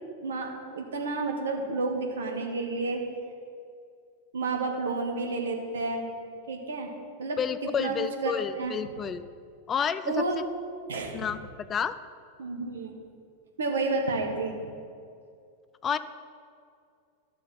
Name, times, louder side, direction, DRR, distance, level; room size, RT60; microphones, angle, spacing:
voice 1, 0.2-3.0 4.3-6.1 6.5-6.9 7.2-7.4 7.8-8.7 10.1-10.4 10.9-11.3 12.4-13.0 13.6-14.6, right 3 dB, 65° right, 2 dB, 1.4 m, -30 dB
voice 2, 7.4-9.2 9.7-10.2 11.1-11.9 15.8-16.0, left 7 dB, 25° left, 13 dB, 0.4 m, -30 dB
11.5 x 6.9 x 5.7 m, 2.3 s
figure-of-eight pair, 90°, 0 cm